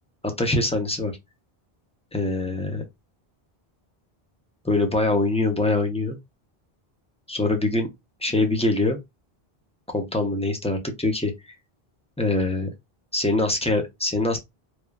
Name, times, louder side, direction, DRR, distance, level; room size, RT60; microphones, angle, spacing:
voice 1, 0.4-1.1 2.1-2.9 4.6-6.2 7.3-7.9 8.2-9.0 9.9-11.3 12.2-12.7 13.1-14.4, left 2 dB, 10° left, 0.4 m, -23 dB
3.0 x 2.2 x 2.2 m
omnidirectional pair, 1.0 m